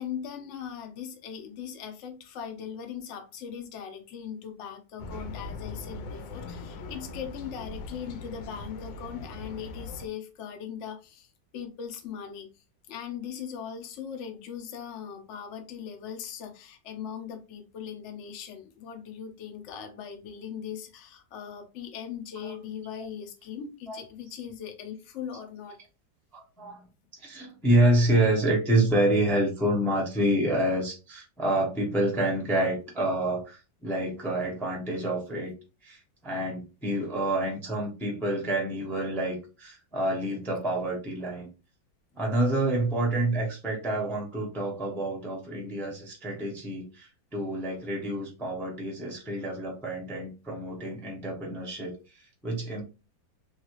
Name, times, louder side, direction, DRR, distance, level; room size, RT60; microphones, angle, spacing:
voice 1, 0.0-12.5 12.9-25.8, left 8 dB, 70° left, 0.6 m, -39 dB
sound 1, 5.0-10.1, left 3 dB, 85° left, 1.3 m, -40 dB
voice 2, 26.3-26.8 27.2-35.5 35.8-41.5 42.1-52.8, right 1 dB, ahead, 0.5 m, -28 dB
3.1 x 2.7 x 2.9 m
omnidirectional pair, 2.0 m